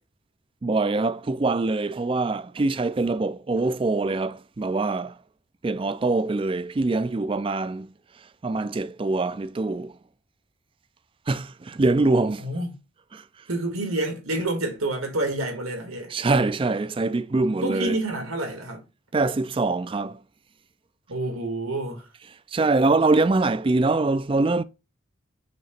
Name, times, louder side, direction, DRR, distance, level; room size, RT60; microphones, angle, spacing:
voice 1, 0.6-5.2 5.6-7.9 8.4-10.0 11.3-12.5 13.1-13.2 16.1-18.0 19.1-20.2 22.5-24.6, right 3 dB, 25° right, 0.3 m, -24 dB
voice 2, 13.5-16.1 17.3-18.8 21.1-22.1, right 2 dB, 90° right, 2.1 m, -28 dB
6.4 x 2.9 x 5.8 m
head